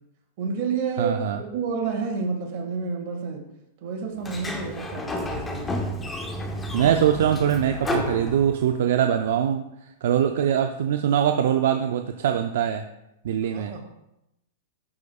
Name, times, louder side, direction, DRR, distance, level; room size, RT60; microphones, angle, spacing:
voice 1, 0.4-3.4 3.8-5.7 13.5-13.8, right 5 dB, 50° right, 1 dB, 1.9 m, -29 dB
voice 2, 1.0-1.4 6.7-12.9 13.2-13.7, right 9 dB, 70° right, 6 dB, 0.4 m, -23 dB
Sliding door, 4.2-8.9, left 1 dB, 10° left, 0.9 m, -31 dB
12.0 x 4.9 x 2.4 m, 0.87 s
hypercardioid pair, 145°, 0 cm